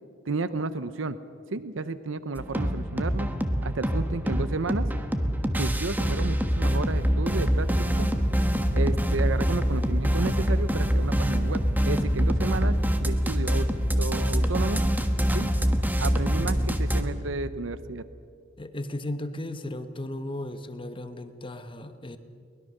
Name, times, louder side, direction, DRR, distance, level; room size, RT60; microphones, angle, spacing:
voice 1, 0.3-1.2 1.5-3.3 3.6-4.9 5.6-8.1 8.7-13.7 14.0-14.8 15.3-15.5 16.0-18.0, right 3 dB, 80° right, 13 dB, 0.8 m, -32 dB
sound 1, 2.4-17.0, equal, 10° right, 1.3 m, -25 dB
voice 2, 18.6-22.2, left 1 dB, 25° left, 9 dB, 1.1 m, -35 dB
23.0 x 20.5 x 6.7 m, 2.3 s
head